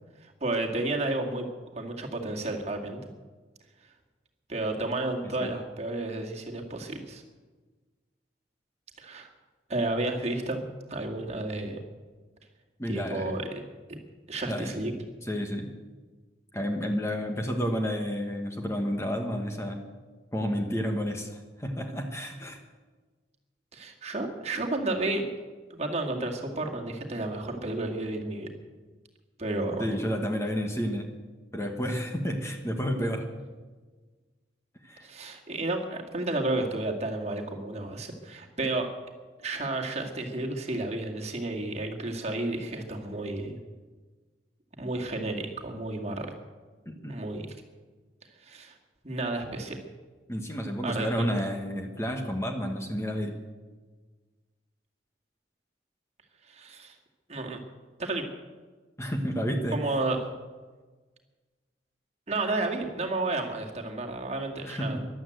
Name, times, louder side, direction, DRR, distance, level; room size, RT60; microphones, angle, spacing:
voice 1, 0.2-1.5 1.7-3.0 3.8-3.9 4.5-7.2 9.0-9.3 9.7-10.6 10.9-11.8 12.9-13.6 13.9-14.0 14.3-14.9 23.7-25.3 25.7-28.5 29.4-29.9 35.0-38.9 39.4-43.6 44.8-46.3 47.1-47.5 48.4-48.8 49.0-49.8 50.8-51.1 56.4-57.0 57.3-57.6 58.0-58.3 59.7-60.3 62.3-65.1, right 2 dB, 35° right, 1 dB, 2.1 m, -31 dB
voice 2, 12.8-13.3 14.5-14.8 15.2-15.7 16.5-19.8 20.3-22.6 29.8-31.1 31.5-33.3 34.8-35.1 46.8-47.2 50.3-53.3 59.0-59.8 64.6-65.1, equal, 15° left, 3 dB, 1.4 m, -31 dB
14.5 x 12.0 x 7.9 m, 1.3 s
head